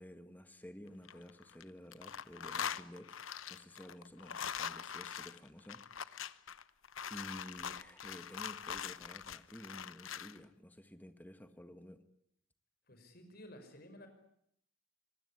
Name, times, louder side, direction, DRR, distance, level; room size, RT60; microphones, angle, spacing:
voice 1, 0.0-3.2 3.5-6.4 7.1-12.0, equal, 10° left, 10 dB, 1.6 m, -52 dB
sound 1, 0.9-1.6 1.9-10.4, left 8 dB, 90° left, 1.0 m, -43 dB
voice 2, 12.9-14.1, left 1 dB, 50° left, 7 dB, 5.6 m, -54 dB
25.5 x 19.5 x 9.9 m, 0.70 s
head